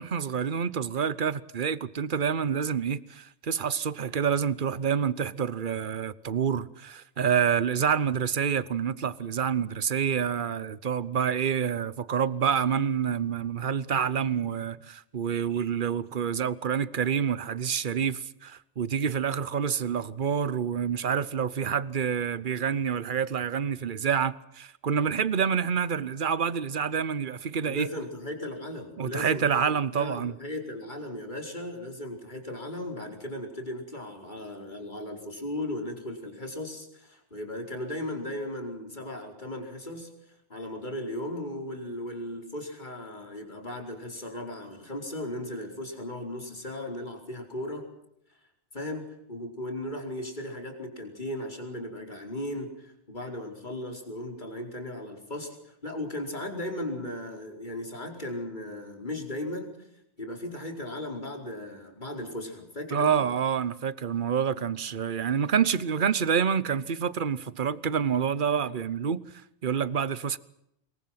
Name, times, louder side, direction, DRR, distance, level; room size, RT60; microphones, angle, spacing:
voice 1, 0.0-27.9 29.0-30.4 62.9-69.2 69.6-70.4, right 7 dB, 50° right, 1.1 m, -27 dB
voice 2, 27.6-40.1 40.5-47.9 48.7-59.8 60.2-63.3, left 1 dB, 45° left, 5.0 m, -36 dB
27.0 x 22.5 x 5.9 m
omnidirectional pair, 1.2 m